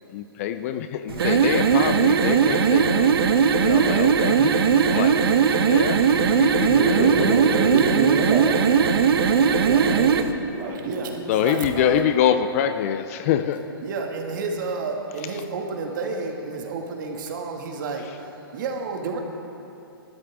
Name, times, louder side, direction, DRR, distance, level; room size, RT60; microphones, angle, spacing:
voice 1, 0.1-3.2 3.6-7.3 11.3-13.6, left 9 dB, 35° left, 10 dB, 0.6 m, -25 dB
sound 1, 1.1-10.3, right 6 dB, 70° right, 1.1 m, -19 dB
voice 2, 3.7-4.1 6.6-8.6 9.4-10.1 10.5-10.9, right 4 dB, 30° right, -1 dB, 2.6 m, -26 dB
voice 3, 10.8-12.0 13.8-18.1 18.5-19.2, right 4 dB, 55° right, 2 dB, 2.1 m, -30 dB
24.5 x 13.0 x 3.7 m, 2.9 s
hypercardioid pair, 150°, 13 cm